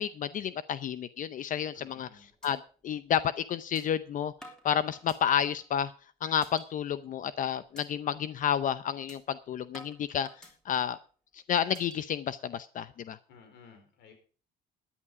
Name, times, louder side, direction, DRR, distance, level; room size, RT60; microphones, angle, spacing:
voice 1, 0.0-2.1 2.4-4.3 4.6-5.9 6.2-10.3 10.7-11.0 11.3-13.2, left 9 dB, 50° left, 15 dB, 0.6 m, -30 dB
voice 2, 1.7-2.3 13.3-14.1, left 6 dB, 80° left, 6 dB, 4.4 m, -55 dB
sound 1, 2.4-2.5 2.9-3.0 3.8-3.9 4.4-5.7 6.2-6.7 7.1-7.3 7.8-7.9 8.3-8.5 9.1-9.2 9.7-11.0 11.6-12.0, equal, 5° left, 3.6 m, -51 dB
13.5 x 10.0 x 4.7 m, 0.39 s
cardioid pair, 110°, 17 cm